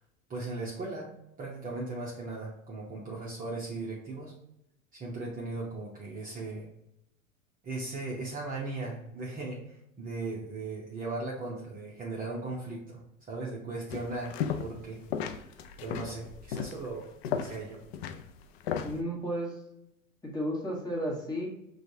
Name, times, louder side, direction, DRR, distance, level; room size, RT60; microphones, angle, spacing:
voice 1, 0.3-4.4 4.9-6.7 7.6-15.0 15.8-17.1 17.4-17.8, right 3 dB, 20° right, -5 dB, 0.8 m, -38 dB
sound 1, 13.9-14.8 15.1-19.0, left 8 dB, 50° left, 0.5 m, -35 dB
voice 2, 18.8-19.6 20.2-21.5, equal, 10° left, -4 dB, 1.3 m, -33 dB
6.1 x 2.4 x 2.7 m, 0.82 s
figure-of-eight pair, 95°, 41 cm